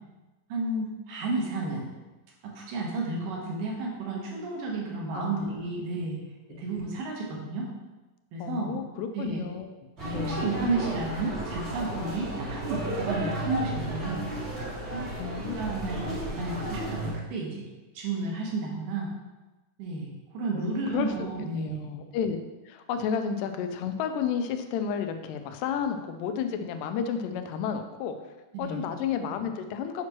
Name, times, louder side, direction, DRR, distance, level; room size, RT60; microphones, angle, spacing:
voice 1, 0.5-1.9 2.4-6.2 6.6-7.7 8.3-8.7 9.1-9.5 10.0-14.2 14.9-15.1 15.6-17.7 17.9-19.1 19.8-21.9 28.5-28.8, right 3 dB, 75° right, -2 dB, 2.8 m, -32 dB
voice 2, 5.1-5.7 6.5-6.6 8.4-9.8 10.1-10.6 15.2-15.6 20.5-22.4 22.7-30.1, left 7 dB, 85° left, 7 dB, 2.2 m, -32 dB
sound 1, 10.0-17.1, right 1 dB, 35° right, 1.0 m, -33 dB
7.4 x 5.9 x 3.0 m, 1.1 s
omnidirectional pair, 3.8 m